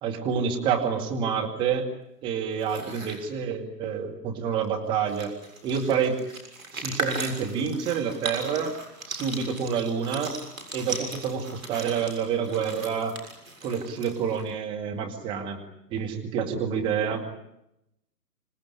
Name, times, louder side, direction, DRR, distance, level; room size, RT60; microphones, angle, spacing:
voice 1, 0.0-1.9 2.2-5.3 5.6-6.2 6.7-8.8 9.1-10.3 10.7-13.1 13.6-15.6 15.9-17.2, right 7 dB, 10° right, 1 dB, 2.0 m, -28 dB
sound 1, 2.5-3.2 4.6-4.7 4.9-14.5, right 2 dB, 55° right, 7.1 m, -37 dB
27.0 x 18.0 x 9.8 m, 0.85 s
figure-of-eight pair, 145°, 48 cm